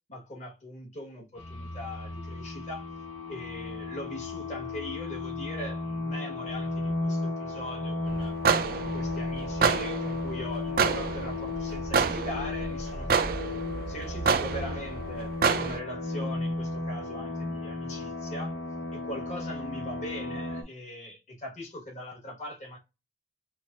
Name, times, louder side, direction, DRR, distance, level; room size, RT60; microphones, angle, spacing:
voice 1, 0.1-2.9 3.3-8.3 8.8-13.5 13.9-18.5 18.9-22.8, left 1 dB, 40° left, 1.2 m, -41 dB
sound 1, 1.4-20.6, left 3 dB, 90° left, 0.7 m, -35 dB
sound 2, 8.1-15.8, right 5 dB, 50° right, 0.4 m, -29 dB
5.8 x 2.0 x 2.3 m
head